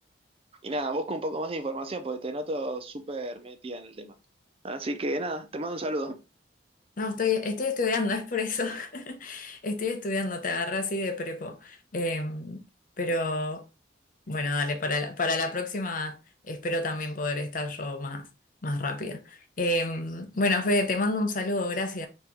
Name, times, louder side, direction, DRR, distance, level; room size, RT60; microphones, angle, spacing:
voice 1, 0.6-4.1 4.6-6.1, right 1 dB, 30° right, 0.5 m, -32 dB
voice 2, 7.0-12.6 13.0-13.6 14.3-16.2 16.5-18.3 18.6-22.1, left 2 dB, 50° left, 0.7 m, -29 dB
4.2 x 2.9 x 3.7 m
head